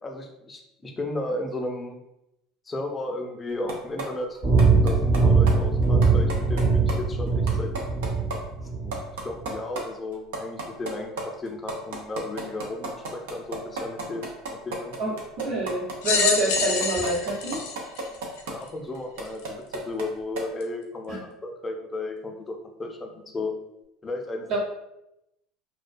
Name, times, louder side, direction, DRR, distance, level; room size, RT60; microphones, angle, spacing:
voice 1, 0.0-2.0 2.7-4.4 4.7-7.7 8.8-8.9 9.2-15.0 18.5-23.5 24.0-24.6, left 2 dB, 20° left, 2 dB, 0.5 m, -34 dB
sound 1, 3.7-4.0 4.3-5.2 5.5-5.6 5.8-6.6 6.9-7.0 7.3-8.4 8.6-8.7 8.9-9.8 10.1-18.5 19.0-20.1 20.4-20.5, right 3 dB, 80° right, 0.5 m, -33 dB
sound 2, 4.4-9.0, right 4 dB, 35° right, 0.9 m, -21 dB
voice 2, 15.0-17.6 21.1-21.2 24.5-24.6, right 2 dB, 65° right, -4 dB, 0.9 m, -27 dB
sound 3, 16.0-18.7 19.4-19.5 20.6-20.7, left 5 dB, 80° left, 0.4 m, -26 dB
2.3 x 2.2 x 2.5 m, 0.86 s
supercardioid pair, 90°, 0 cm